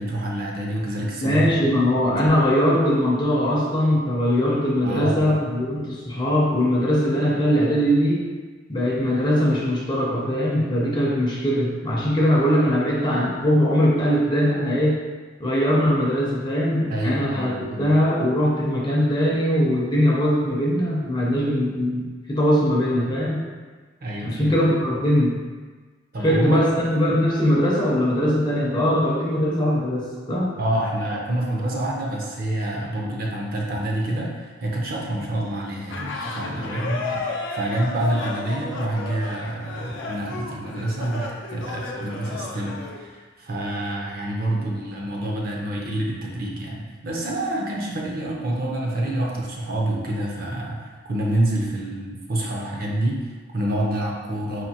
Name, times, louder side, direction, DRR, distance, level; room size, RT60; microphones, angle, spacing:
voice 1, 0.0-1.5 2.1-2.3 4.8-5.3 16.9-17.9 24.0-24.5 26.1-26.6 30.6-54.6, right 1 dB, 50° right, -2 dB, 0.6 m, -27 dB
voice 2, 1.2-8.2 8.7-15.0 15.4-23.4 24.2-25.4 26.2-30.5, equal, 25° left, -4 dB, 0.6 m, -21 dB
sound 1, 35.9-43.0, left 3 dB, 75° left, 0.5 m, -33 dB
4.3 x 2.6 x 2.8 m, 1.4 s
head